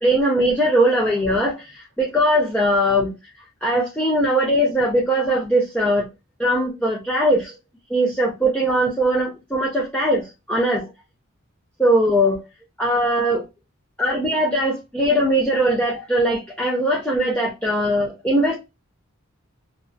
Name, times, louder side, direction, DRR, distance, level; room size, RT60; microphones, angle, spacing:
voice 1, 0.0-3.1 3.6-6.1 6.4-7.6 7.9-10.9 11.8-12.4 12.8-13.4 14.0-18.6, right 1 dB, 5° left, 0.4 m, -20 dB
2.4 x 2.0 x 2.5 m
head